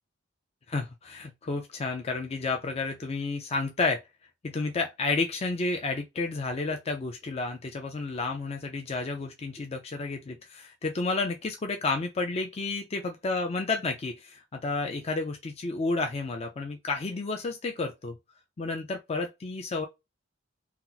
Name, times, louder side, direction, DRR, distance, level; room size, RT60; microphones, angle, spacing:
voice 1, 0.7-4.0 4.4-18.2 18.6-19.9, left 3 dB, 30° left, 0.4 m, -31 dB
2.9 x 2.0 x 3.8 m
head